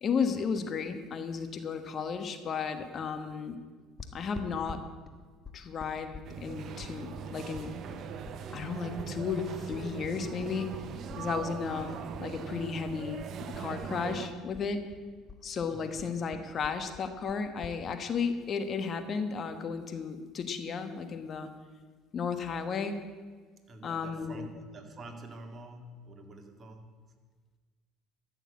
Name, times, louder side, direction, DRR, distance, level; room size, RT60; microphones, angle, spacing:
voice 1, 0.0-3.6 4.1-4.8 5.5-7.7 8.5-10.7 11.2-11.9 12.2-13.2 13.6-14.8 15.4-21.5 22.1-23.0 23.8-24.5, left 6 dB, 45° left, 8 dB, 1.3 m, -34 dB
sound 1, 4.0-12.3 12.5-14.2 14.5-17.8, left 5 dB, 25° left, 1.5 m, -48 dB
sound 2, 6.2-14.3, right 7 dB, 55° right, 1.0 m, -40 dB
voice 2, 11.2-11.6 15.7-16.0 23.7-27.1, right 2 dB, 35° right, 4 dB, 2.1 m, -48 dB
13.5 x 6.8 x 8.7 m, 1.4 s
hypercardioid pair, 75°, 0 cm